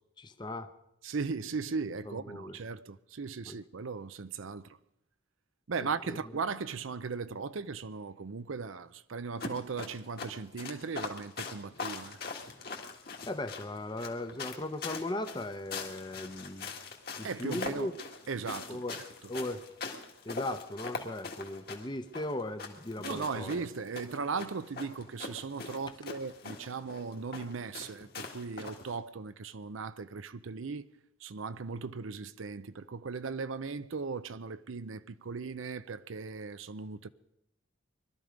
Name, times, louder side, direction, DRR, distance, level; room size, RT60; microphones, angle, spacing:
voice 1, 0.2-0.7 2.1-2.6 3.5-3.6 5.8-6.2 13.3-16.7 17.2-17.9 18.7-19.0 19.3-19.6 20.2-23.5, left 1 dB, 20° left, 0.8 m, -38 dB
voice 2, 1.0-4.8 5.7-12.2 17.2-18.0 18.3-18.8 23.0-30.9 31.2-37.1, right 4 dB, 70° right, 0.6 m, -38 dB
sound 1, 9.4-29.0, left 4 dB, 45° left, 1.8 m, -42 dB
21.5 x 12.5 x 5.1 m
head